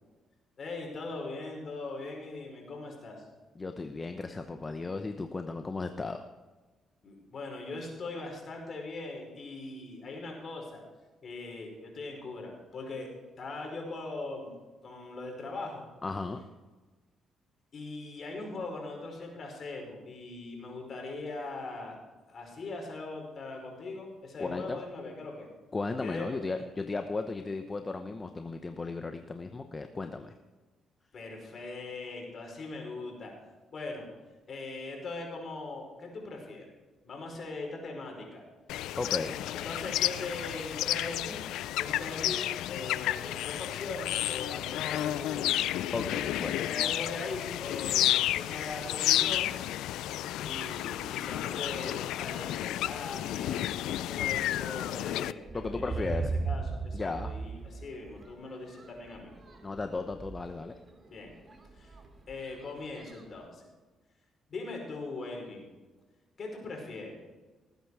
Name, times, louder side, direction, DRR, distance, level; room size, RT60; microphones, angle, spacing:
voice 1, 0.6-3.3 7.0-10.8 11.2-13.1 13.4-14.5 14.8-15.9 17.7-22.0 22.3-25.5 26.0-26.3 31.1-33.3 33.7-34.1 34.5-36.7 37.0-38.4 39.5-41.4 41.8-45.6 46.7-49.5 50.4-59.3 61.1-61.3 61.7-62.0 62.3-63.6 64.5-65.6 66.4-67.2, left 3 dB, 50° left, 1 dB, 5.2 m, -40 dB
voice 2, 3.6-6.3 16.0-16.4 24.4-24.8 25.7-30.3 39.0-39.4 45.9-46.7 55.5-56.3 56.9-57.3 59.6-60.7, left 3 dB, 30° left, 7 dB, 0.9 m, -35 dB
sound 1, 38.7-55.3, left 13 dB, 90° left, 0.4 m, -31 dB
sound 2, 48.0-49.0 49.7-49.8 50.3-50.6 50.9-51.5 52.2-52.4 52.8-63.5, right 4 dB, 30° right, 2.4 m, -40 dB
19.5 x 9.3 x 4.9 m, 1.3 s
cardioid pair, 90°, 0 cm